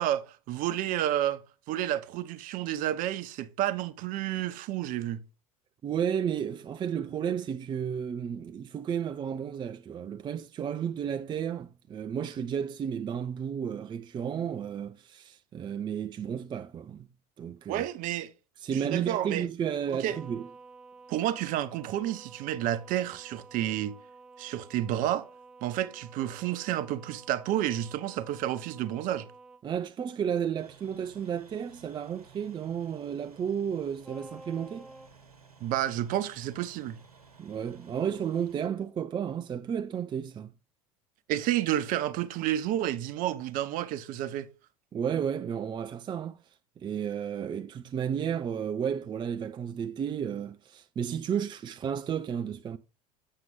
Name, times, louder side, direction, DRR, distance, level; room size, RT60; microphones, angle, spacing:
voice 1, 0.0-1.4 1.7-5.2 17.7-18.3 18.7-19.4 19.9-20.2 21.1-23.9 24.4-25.3 25.6-29.3 35.6-37.0 41.3-44.5, right 12 dB, 45° right, 0.8 m, -30 dB
voice 2, 5.8-17.1 17.4-17.8 18.6-20.5 29.6-34.9 37.4-40.5 44.9-46.4 46.8-52.8, right 8 dB, 25° right, 0.5 m, -32 dB
sound 1, 20.0-29.6 34.0-35.1, right 3 dB, ahead, 1.3 m, -51 dB
sound 2, 30.6-38.7, right 6 dB, 90° right, 1.1 m, -56 dB
7.5 x 6.6 x 3.7 m
hypercardioid pair, 80°, 19 cm